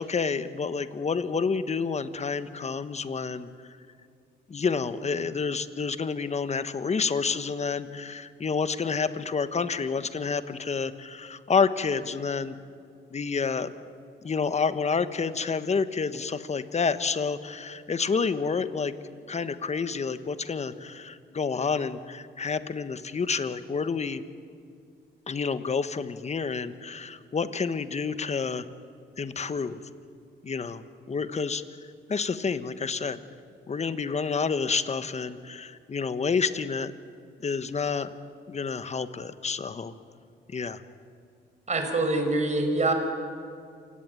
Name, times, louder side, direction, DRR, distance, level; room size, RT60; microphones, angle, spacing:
voice 1, 0.0-3.5 4.5-12.5 13.1-13.7 14.2-18.9 19.3-24.2 25.3-28.6 29.2-29.8 30.4-30.8 31.1-31.6 32.1-33.2 33.7-36.9 37.4-38.1 38.5-39.9 40.5-40.8, left 5 dB, 35° left, 12 dB, 1.3 m, -29 dB
voice 2, 41.7-42.9, right 2 dB, 35° right, 5 dB, 5.1 m, -25 dB
28.0 x 17.5 x 9.2 m, 2.3 s
cardioid pair, 90°, 20 cm